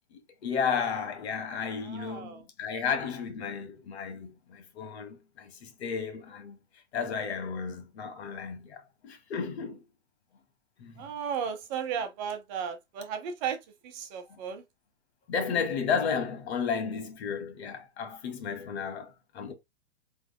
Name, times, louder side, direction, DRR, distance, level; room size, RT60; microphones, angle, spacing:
voice 1, 0.1-6.6 6.9-9.8 10.8-11.1 15.3-19.5, left 6 dB, 65° left, 1.4 m, -33 dB
voice 2, 1.8-2.4 11.0-13.6 13.8-14.6, right 7 dB, 40° right, 1.0 m, -35 dB
4.9 x 3.5 x 2.2 m
hypercardioid pair, 130°, 34 cm